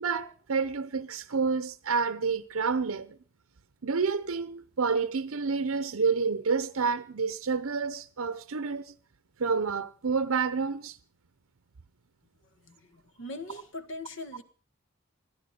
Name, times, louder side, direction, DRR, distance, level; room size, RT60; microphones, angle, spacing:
voice 1, 0.0-3.2 3.8-8.9 9.4-11.0, right 5 dB, 80° right, 0.7 m, -29 dB
voice 2, 12.6-14.4, left 2 dB, 60° left, 1.6 m, -41 dB
21.5 x 14.5 x 4.4 m
head